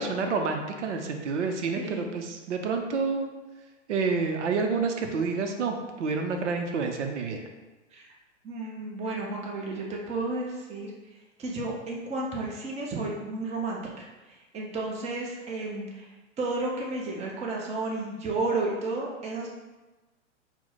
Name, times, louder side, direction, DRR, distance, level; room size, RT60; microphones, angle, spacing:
voice 1, 0.0-3.3 3.9-7.4, right 4 dB, 70° right, 4 dB, 0.6 m, -28 dB
voice 2, 8.4-10.9 11.4-16.1 16.4-19.5, right 2 dB, 20° right, -3 dB, 0.7 m, -32 dB
4.3 x 2.1 x 3.9 m, 1.1 s
hypercardioid pair, 115°, 37 cm